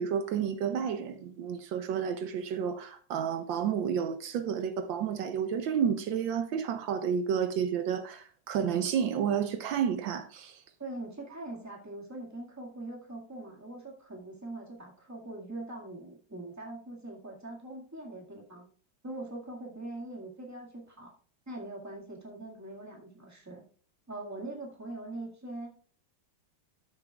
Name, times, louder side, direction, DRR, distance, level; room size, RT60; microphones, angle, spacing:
voice 1, 0.0-10.6, right 7 dB, 75° right, 1.4 m, -31 dB
voice 2, 10.8-18.7 19.0-21.1 21.5-23.6 24.1-25.7, right 2 dB, 10° right, 1.8 m, -42 dB
13.5 x 6.6 x 2.4 m
omnidirectional pair, 2.1 m